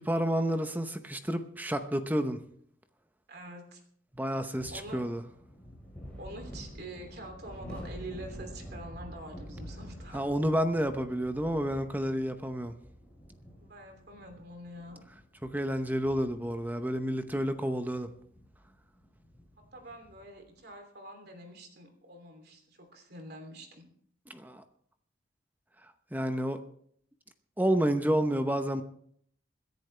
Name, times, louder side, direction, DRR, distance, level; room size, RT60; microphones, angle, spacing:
voice 1, 0.1-2.4 4.1-5.2 10.1-12.7 15.4-18.1 24.3-24.6 26.1-26.6 27.6-28.8, equal, 10° right, 8 dB, 0.8 m, -30 dB
voice 2, 3.3-3.8 4.5-5.0 6.2-10.2 13.5-15.0 19.7-23.9 26.3-26.4, right 1 dB, 55° right, 4 dB, 3.0 m, -46 dB
sound 1, 4.5-20.4, equal, 5° left, 4.6 m, -48 dB
26.0 x 10.5 x 3.3 m, 0.63 s
head